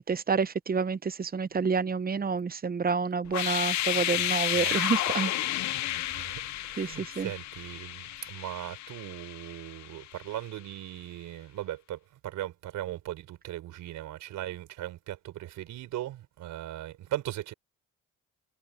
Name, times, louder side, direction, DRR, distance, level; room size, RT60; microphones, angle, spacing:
voice 1, 0.0-5.3 6.8-7.3, right 5 dB, 30° right, 0.9 m, -29 dB
sound 1, 3.3-10.1, left 14 dB, 70° left, 0.7 m, -32 dB
voice 2, 3.9-4.3 4.5-4.8 6.1-17.5, right 13 dB, 85° right, 4.7 m, -39 dB
cardioid pair, 90°, 30 cm